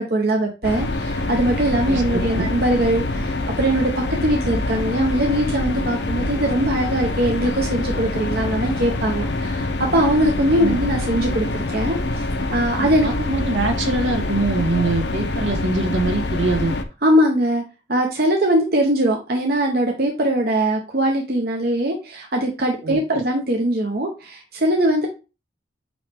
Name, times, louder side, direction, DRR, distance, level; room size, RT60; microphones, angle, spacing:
voice 1, 0.0-3.9 4.2-13.3 17.0-17.6 17.9-25.1, right 1 dB, 55° right, 1 dB, 1.0 m, -21 dB
sound 1, 0.6-16.8, left 2 dB, 65° left, 0.8 m, -25 dB
voice 2, 12.8-16.8 22.8-23.0, right 3 dB, 85° right, 3 dB, 1.8 m, -23 dB
9.0 x 3.2 x 3.5 m, 0.31 s
head